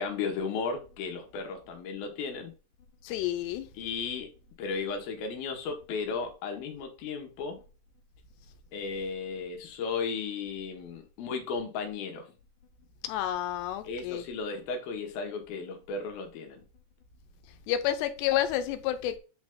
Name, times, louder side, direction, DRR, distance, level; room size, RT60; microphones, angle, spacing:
voice 1, 0.0-2.5 3.7-4.3 4.6-7.6 8.7-12.3 13.8-16.6, left 5 dB, 70° left, 2.9 m, -35 dB
voice 2, 3.0-3.7 13.0-14.2 17.7-19.2, left 11 dB, 90° left, 2.9 m, -30 dB
8.5 x 4.0 x 3.6 m
omnidirectional pair, 4.8 m